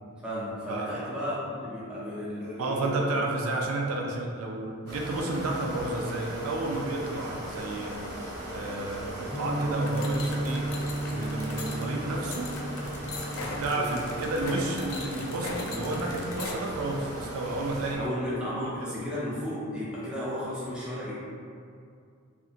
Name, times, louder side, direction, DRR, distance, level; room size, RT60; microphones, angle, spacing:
voice 1, 0.2-3.2 13.7-14.0 18.0-21.2, left 1 dB, 5° right, -9 dB, 0.5 m, -34 dB
voice 2, 2.6-10.7 11.1-12.6 13.6-18.1 18.6-19.0, right 2 dB, 80° right, 0 dB, 0.4 m, -31 dB
sound 1, 4.9-18.0, right 1 dB, 50° right, 0.7 m, -38 dB
sound 2, 9.3-16.1, right 1 dB, 20° right, 1.0 m, -35 dB
sound 3, 9.9-16.6, left 3 dB, 75° left, 0.4 m, -39 dB
2.7 x 2.4 x 2.4 m, 2.3 s
head